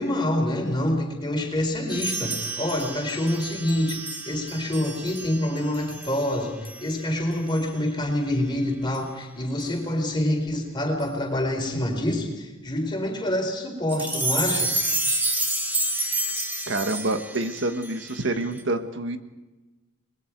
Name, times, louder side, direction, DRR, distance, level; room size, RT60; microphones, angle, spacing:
voice 1, 0.0-14.7, left 1 dB, 20° left, 2 dB, 4.4 m, -26 dB
sound 1, 1.9-6.4 6.6-6.9 7.5-7.7 8.9-9.0 9.6-9.7 11.0-11.1 13.9-18.6, right 2 dB, 10° right, 1.8 m, -29 dB
voice 2, 16.7-19.2, right 2 dB, 60° right, 7 dB, 1.5 m, -27 dB
29.0 x 21.0 x 4.7 m, 1.1 s
head